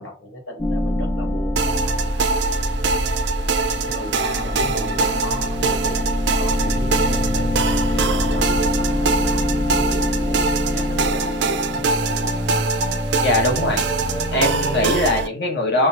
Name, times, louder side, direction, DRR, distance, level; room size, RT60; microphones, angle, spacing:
voice 1, 0.0-2.7 3.8-12.4, left 1 dB, 90° left, 2 dB, 1.6 m, -37 dB
sound 1, 0.6-15.2, left 1 dB, 15° left, 0.4 m, -24 dB
sound 2, 1.6-15.3, right 4 dB, 65° right, 0.4 m, -24 dB
voice 2, 13.2-13.8 14.3-15.9, left 1 dB, 60° left, 1 dB, 1.2 m, -20 dB
6.1 x 2.3 x 2.8 m, 0.34 s
head